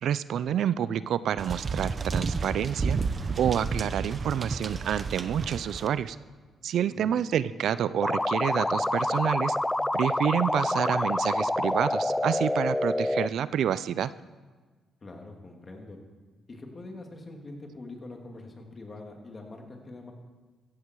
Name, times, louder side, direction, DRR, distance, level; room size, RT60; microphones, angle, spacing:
voice 1, 0.0-3.0 3.4-6.2 6.6-9.5 9.9-14.1, right 9 dB, 70° right, 16 dB, 0.5 m, -28 dB
sound 1, 1.4-5.9, right 4 dB, 35° right, 0.9 m, -31 dB
voice 2, 6.8-7.2 15.0-16.0 16.5-20.1, left 2 dB, 30° left, 2 dB, 3.0 m, -44 dB
sound 2, 8.0-13.3, left 1 dB, 10° left, 0.4 m, -27 dB
15.5 x 15.0 x 4.8 m, 1.4 s
cardioid pair, 90°, 0 cm